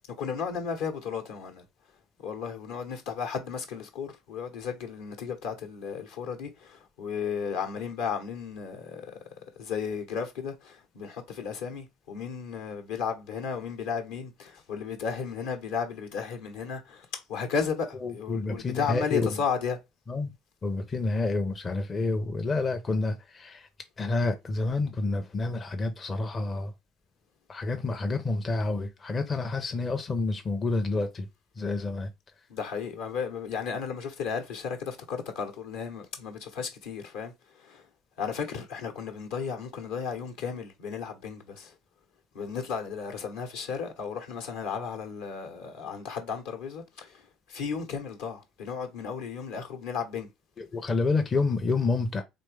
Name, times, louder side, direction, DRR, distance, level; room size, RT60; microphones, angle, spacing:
voice 1, 0.2-1.6 2.2-9.1 9.6-19.8 32.5-37.3 37.6-37.8 38.2-41.7 42.3-47.2 47.5-50.3, left 6 dB, 65° left, 1.0 m, -34 dB
voice 2, 18.0-19.4 20.1-20.3 20.6-23.7 24.0-26.7 27.5-31.3 31.6-32.1 50.6-52.2, left 3 dB, 30° left, 0.6 m, -29 dB
4.3 x 3.1 x 3.3 m
figure-of-eight pair, 60°, 0 cm